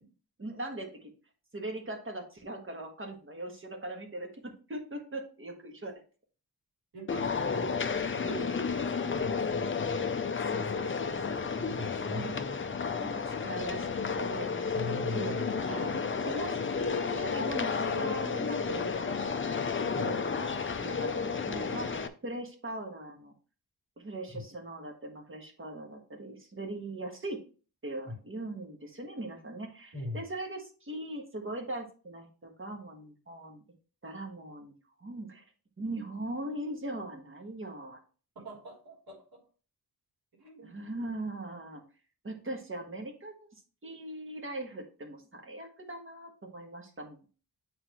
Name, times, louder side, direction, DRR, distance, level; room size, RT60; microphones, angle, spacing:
voice 1, 0.4-1.1 1.5-5.9 10.3-11.5 12.1-12.4 13.0-13.9 14.1-14.7 15.1-15.4 15.7-19.1 19.4-23.3 24.0-27.4 27.8-33.6 34.0-34.7 35.0-35.4 35.8-38.0 40.6-41.8 42.2-43.5 43.8-47.2, right 1 dB, 30° right, 2 dB, 1.5 m, -40 dB
voice 2, 6.9-10.8 11.5-12.6 14.7-15.5 19.9-20.1 24.3-24.4 28.0-28.2 29.9-30.2 38.3-39.4 40.4-40.9, left 1 dB, 65° right, -4 dB, 3.4 m, -42 dB
sound 1, 7.1-22.1, left 5 dB, 30° left, 0.5 m, -32 dB
9.2 x 3.9 x 3.0 m, 0.38 s
wide cardioid pair, 130°, 39 cm